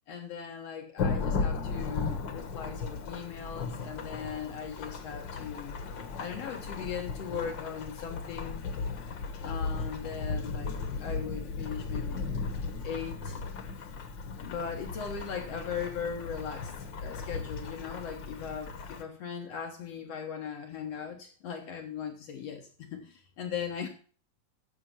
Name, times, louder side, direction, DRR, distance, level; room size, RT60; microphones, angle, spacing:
voice 1, 0.1-5.8 6.2-8.7 9.4-12.3 12.8-13.4 14.4-16.7 17.0-23.9, left 7 dB, 60° left, 3 dB, 2.0 m, -39 dB
Thunderstorm / Rain, 1.0-19.0, left 4 dB, 85° left, 1.0 m, -36 dB
10.0 x 6.7 x 5.8 m, 0.42 s
omnidirectional pair, 3.9 m